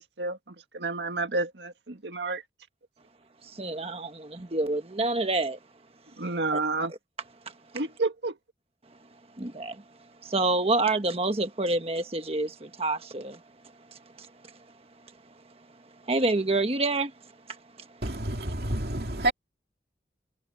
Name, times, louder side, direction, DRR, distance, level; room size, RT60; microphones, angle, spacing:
voice 1, 0.0-2.4 6.2-6.9 7.7-8.4, right 3 dB, 85° right, 1.8 m, -30 dB
voice 2, 3.6-4.1 4.5-5.6 9.4-9.7 10.3-12.5 12.8-13.3 16.1-17.1, right 2 dB, 35° right, 1.3 m, -26 dB
voice 3, 18.0-19.3, right 1 dB, 60° right, 2.5 m, -29 dB
head